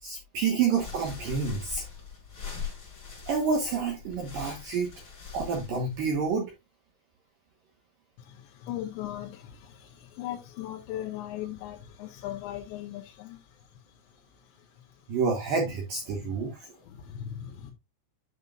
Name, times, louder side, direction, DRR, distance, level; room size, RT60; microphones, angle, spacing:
voice 1, 0.0-1.8 3.3-4.9 5.3-6.5 15.1-16.7, right 5 dB, 70° right, 2.2 m, -28 dB
sound 1, 0.7-6.4, left 6 dB, 25° left, 5.5 m, -42 dB
voice 2, 8.2-14.9 16.2-16.4 16.8-17.7, left 12 dB, 80° left, 2.9 m, -39 dB
9.5 x 6.7 x 2.4 m
omnidirectional pair, 5.7 m